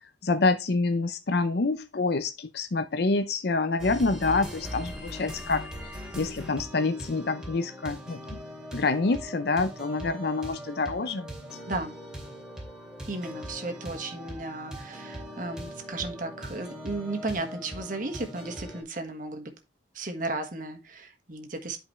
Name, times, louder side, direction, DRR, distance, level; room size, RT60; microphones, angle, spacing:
voice 1, 0.2-8.4 8.7-11.3, left 3 dB, 55° left, 0.5 m, -27 dB
sound 1, 3.8-18.8, equal, 5° right, 2.6 m, -40 dB
voice 2, 13.1-19.5 19.9-21.8, right 2 dB, 45° right, 1.5 m, -34 dB
11.0 x 5.1 x 3.1 m
head